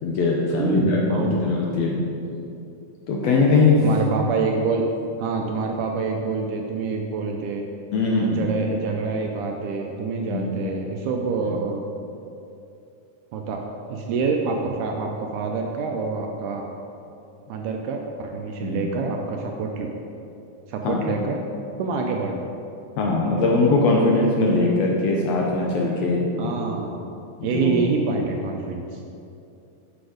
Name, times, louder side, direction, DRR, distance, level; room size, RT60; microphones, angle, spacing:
voice 1, 0.0-2.0 3.1-3.8 7.9-8.5 10.3-10.5 11.4-11.5 18.6-18.9 20.8-21.1 23.0-26.5 27.4-27.8, left 3 dB, 80° left, -2 dB, 1.5 m, -21 dB
voice 2, 0.6-1.7 3.8-4.8 5.2-7.6 8.1-11.9 13.3-13.6 13.9-16.6 17.5-19.9 20.7-21.4 21.8-22.4 26.4-27.1 27.4-29.0, right 4 dB, 80° right, 2 dB, 1.9 m, -26 dB
8.0 x 6.1 x 5.0 m, 2.7 s
omnidirectional pair, 4.0 m